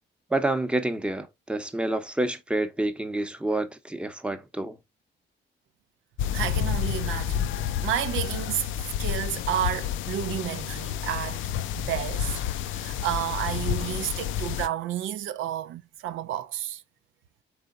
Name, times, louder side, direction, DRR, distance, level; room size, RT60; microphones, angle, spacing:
voice 1, 0.3-4.8, right 2 dB, 5° right, 0.7 m, -28 dB
sound 1, 6.2-14.7, left 10 dB, 80° left, 0.4 m, -30 dB
voice 2, 6.3-8.7 9.0-16.8, right 11 dB, 80° right, 0.5 m, -31 dB
3.8 x 3.4 x 3.7 m
cardioid pair, 90°, 20 cm